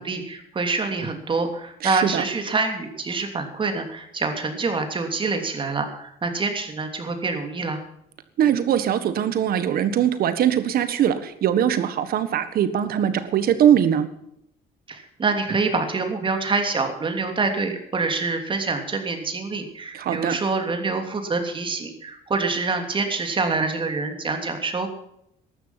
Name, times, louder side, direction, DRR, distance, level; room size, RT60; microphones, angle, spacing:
voice 1, 0.0-7.8 14.9-24.9, right 4 dB, 30° right, 5 dB, 3.0 m, -26 dB
voice 2, 1.8-2.2 8.4-14.1 19.9-20.4, right 9 dB, 60° right, 11 dB, 1.6 m, -21 dB
14.0 x 12.0 x 5.9 m, 0.75 s
cardioid pair, 110°, 17 cm